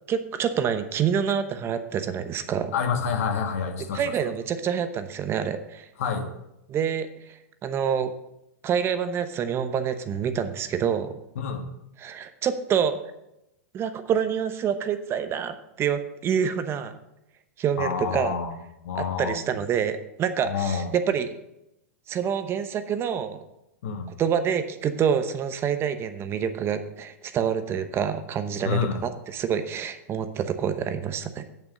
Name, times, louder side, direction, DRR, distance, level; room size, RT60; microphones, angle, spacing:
voice 1, 0.1-2.7 3.9-5.9 6.7-8.1 8.6-11.2 12.0-13.0 13.7-16.9 17.6-18.4 19.0-21.3 22.1-23.4 24.2-31.5, right 8 dB, 30° right, 10 dB, 0.9 m, -27 dB
voice 2, 2.7-4.1 6.0-6.3 11.3-11.7 17.8-18.6 18.8-19.4 20.4-20.9 23.8-24.1 28.6-29.0, left 6 dB, 70° left, 6 dB, 1.5 m, -28 dB
8.1 x 7.1 x 6.5 m, 0.86 s
hypercardioid pair, 110°, 8 cm